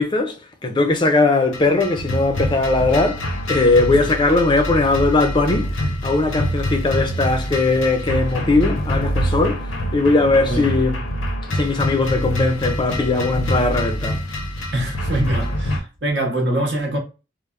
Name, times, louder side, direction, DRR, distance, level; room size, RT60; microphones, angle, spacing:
voice 1, 0.0-11.0 11.5-14.2, left 3 dB, 25° left, 0.4 m, -19 dB
sound 1, 1.5-15.8, equal, 90° left, 0.6 m, -25 dB
voice 2, 14.7-17.0, right 1 dB, 60° right, 0.7 m, -23 dB
3.2 x 2.1 x 2.2 m
head